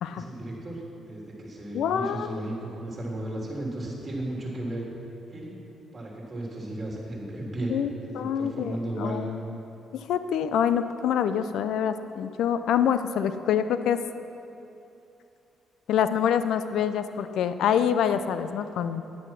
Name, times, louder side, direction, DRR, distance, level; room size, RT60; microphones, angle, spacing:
voice 1, 0.1-4.9 5.3-5.5 5.9-7.7 8.1-9.2, right 1 dB, 25° right, -3 dB, 3.2 m, -34 dB
voice 2, 1.7-2.4 7.7-9.4 9.9-14.0 15.9-19.0, left 8 dB, 75° left, 11 dB, 0.5 m, -26 dB
10.0 x 9.1 x 6.0 m, 2.7 s
cardioid pair, 90°, 0 cm